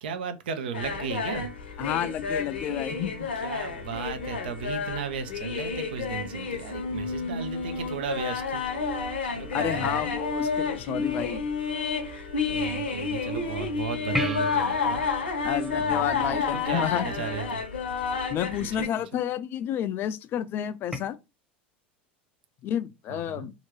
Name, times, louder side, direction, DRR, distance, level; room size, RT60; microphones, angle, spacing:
voice 1, 0.0-1.5 3.4-8.6 9.3-10.1 12.5-15.0 15.8-17.6 18.6-18.7 19.1-19.2 23.1-23.5, right 6 dB, 65° right, 0.5 m, -35 dB
sound 1, 0.7-18.9, left 5 dB, 75° left, 0.7 m, -30 dB
voice 2, 1.8-3.3 9.5-11.4 15.4-17.1 18.3-21.2 22.6-23.5, left 10 dB, 40° left, 0.4 m, -30 dB
Organ, 8.2-17.6, right 5 dB, 45° right, 1.0 m, -42 dB
sound 2, 14.1-16.9 20.9-21.0, right 1 dB, 5° right, 0.8 m, -35 dB
2.8 x 2.5 x 3.0 m
figure-of-eight pair, 80°, 6 cm